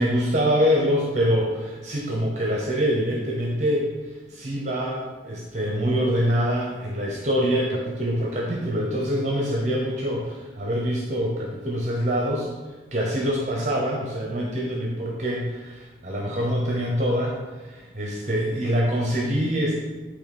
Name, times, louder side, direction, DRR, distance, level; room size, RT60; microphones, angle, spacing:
voice 1, 0.0-3.9 4.3-12.5 12.9-19.7, equal, 40° right, -2 dB, 0.8 m, -25 dB
7.7 x 3.1 x 4.2 m, 1.2 s
head